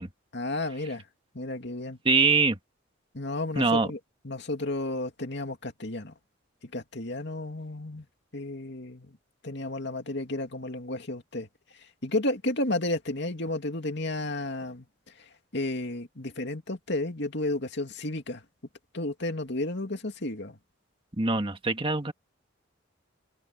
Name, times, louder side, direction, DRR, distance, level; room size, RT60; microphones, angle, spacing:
voice 1, 0.3-1.1 1.3-2.0 3.1-6.1 6.7-8.1 8.3-9.2 9.4-11.5 11.7-18.4 18.9-20.6, left 2 dB, 55° left, 2.6 m, -32 dB
voice 2, 2.0-2.6 3.6-3.9 21.2-22.1, right 4 dB, 25° right, 1.7 m, -23 dB
head